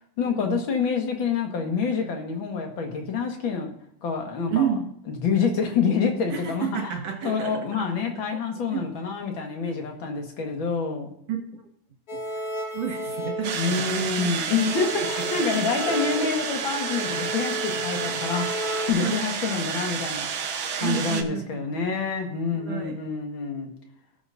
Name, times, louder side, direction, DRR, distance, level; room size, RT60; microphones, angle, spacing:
voice 1, 0.2-3.7 4.0-4.7 5.2-6.9 7.2-11.1 13.5-20.3 20.8-23.7, left 5 dB, 45° left, 3 dB, 1.9 m, -27 dB
voice 2, 4.5-4.9 6.3-7.7 8.7-8.8 11.3-11.6 12.7-14.3 14.6-14.7 15.5-16.3 19.0-19.2 20.8-21.6 22.5-23.0, right 8 dB, 60° right, 3 dB, 2.3 m, -30 dB
sound 1, 12.1-14.2 14.5-18.9, equal, 85° left, 0.8 m, -33 dB
sound 2, 13.4-21.2, right 7 dB, 80° right, 1.1 m, -30 dB
18.0 x 7.0 x 2.6 m, 0.73 s
omnidirectional pair, 3.7 m